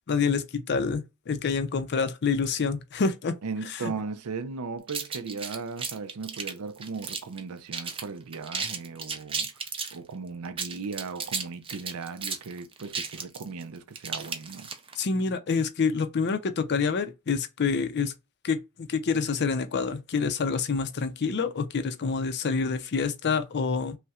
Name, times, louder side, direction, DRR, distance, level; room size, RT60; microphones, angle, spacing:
voice 1, 0.1-3.4 3.8-3.9 15.0-18.1 18.4-24.0, left 5 dB, 50° left, 0.5 m, -27 dB
voice 2, 3.4-9.5 9.9-14.7, right 4 dB, 75° right, 0.5 m, -37 dB
sound 1, 4.9-7.4 7.7-8.0 8.3-10.0 10.4-15.0, right 5 dB, 25° right, 0.5 m, -34 dB
5.4 x 2.1 x 2.4 m
head